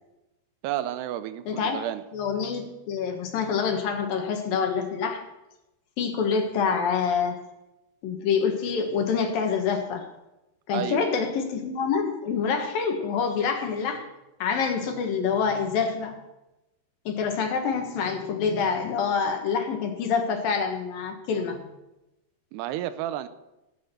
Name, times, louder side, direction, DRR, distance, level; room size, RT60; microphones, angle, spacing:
voice 1, 0.6-2.0 10.7-11.1 22.5-23.3, right 12 dB, 85° right, 12 dB, 2.9 m, -31 dB
voice 2, 1.5-1.8 2.1-5.2 6.0-7.4 8.0-10.1 10.7-14.1 14.4-16.1 17.1-21.6, left 6 dB, 65° left, 4 dB, 3.0 m, -26 dB
18.5 x 8.1 x 6.7 m, 0.97 s
omnidirectional pair, 4.6 m